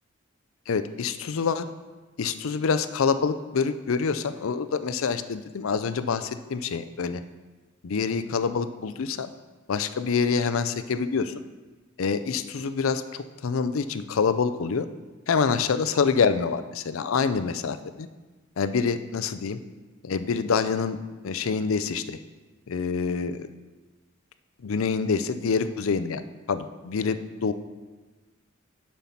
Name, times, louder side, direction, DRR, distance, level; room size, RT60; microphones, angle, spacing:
voice 1, 0.7-1.7 2.2-7.2 7.8-9.3 9.7-11.4 12.0-14.9 15.3-18.1 18.6-19.6 20.0-21.0 21.2-22.2 22.7-23.5 24.6-27.5, left 5 dB, 80° left, 11 dB, 0.5 m, -26 dB
7.3 x 5.5 x 5.7 m, 1.3 s
head